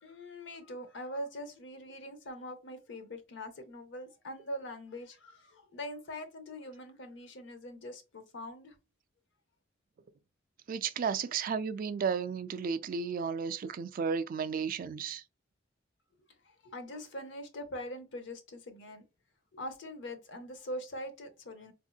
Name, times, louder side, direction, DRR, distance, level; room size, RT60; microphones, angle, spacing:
voice 1, 0.0-8.7 16.6-19.0 19.5-21.7, left 1 dB, 65° left, 0.7 m, -43 dB
voice 2, 10.7-15.2, right 6 dB, 45° right, 0.3 m, -33 dB
4.1 x 2.7 x 2.2 m
head